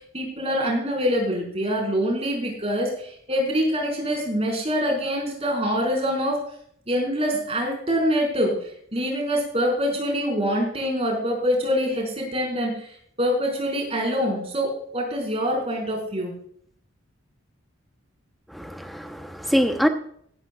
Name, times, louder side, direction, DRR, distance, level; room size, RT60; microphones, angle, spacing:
voice 1, 0.0-6.4 6.9-16.3, equal, 30° right, 5.1 m, -25 dB
voice 2, 18.5-19.9, equal, ahead, 0.9 m, -24 dB
16.5 x 13.5 x 2.4 m
head